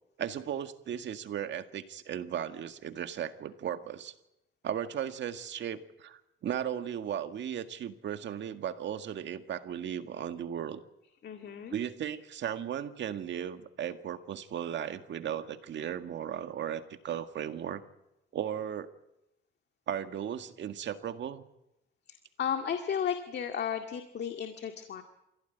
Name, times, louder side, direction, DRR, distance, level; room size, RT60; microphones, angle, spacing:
voice 1, 0.2-4.1 4.6-10.8 11.7-17.8 18.3-18.9 19.9-21.4, right 9 dB, 65° right, 8 dB, 1.9 m, -36 dB
voice 2, 11.2-11.7 22.4-25.0, left 8 dB, 60° left, 5 dB, 2.0 m, -34 dB
26.0 x 16.5 x 9.3 m, 0.89 s
cardioid pair, 90°, 20 cm